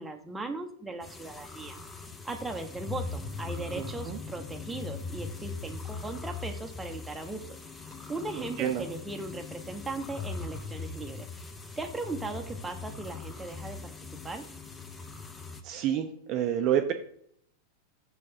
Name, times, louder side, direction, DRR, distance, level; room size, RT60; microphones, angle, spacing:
voice 1, 0.0-1.8 2.2-7.4 8.1-11.3 11.8-13.9 14.2-14.4, right 3 dB, 10° right, 4 dB, 1.0 m, -38 dB
sound 1, 1.0-15.6, left 4 dB, 15° left, 0.8 m, -41 dB
voice 2, 3.8-4.2 8.4-8.8 15.6-16.9, right 10 dB, 40° right, 5 dB, 0.6 m, -29 dB
6.8 x 4.7 x 4.3 m, 0.66 s
figure-of-eight pair, 90°, 0 cm